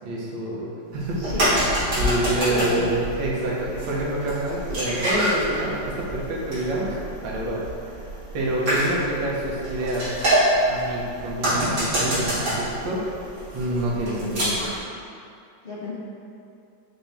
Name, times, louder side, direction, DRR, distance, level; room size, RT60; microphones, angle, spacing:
voice 1, 0.0-0.7 0.9-1.3 2.0-7.0 7.2-7.6 7.9-8.0 8.3-10.1 10.7-13.0 13.5-14.5, right 1 dB, 80° right, -5 dB, 1.6 m, -27 dB
sound 1, 0.9-14.8, right 1 dB, 60° right, 2.3 m, -27 dB
voice 2, 1.2-1.7 2.4-2.9 14.2-14.6 15.6-15.9, left 2 dB, 90° left, -8 dB, 0.5 m, -32 dB
5.9 x 2.6 x 3.4 m, 2.5 s
omnidirectional pair, 2.0 m